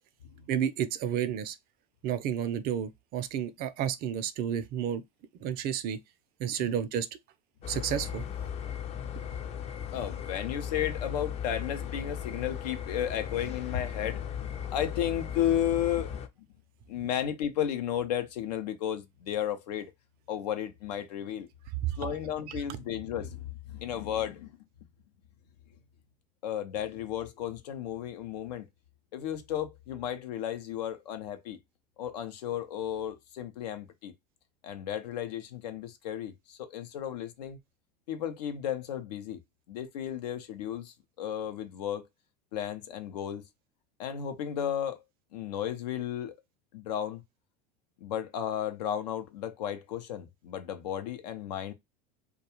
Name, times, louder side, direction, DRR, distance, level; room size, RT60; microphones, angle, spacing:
voice 1, 0.5-1.6 2.0-5.0 5.4-6.0 6.4-7.1 7.7-8.2 21.8-22.1 22.5-22.6, right 9 dB, 50° right, 0.5 m, -31 dB
sound 1, 7.6-16.3, left 9 dB, 30° left, 0.5 m, -37 dB
voice 2, 8.9-9.6 9.9-16.2 16.9-19.9 20.3-21.5 22.0-24.6 26.4-28.6 29.1-31.6 32.0-34.1 34.6-37.6 38.1-39.4 39.7-42.0 42.5-43.4 44.0-45.0 45.3-46.3 46.7-47.2 48.0-51.7, left 10 dB, 80° left, 0.6 m, -34 dB
2.3 x 2.2 x 2.9 m
hypercardioid pair, 90°, 20 cm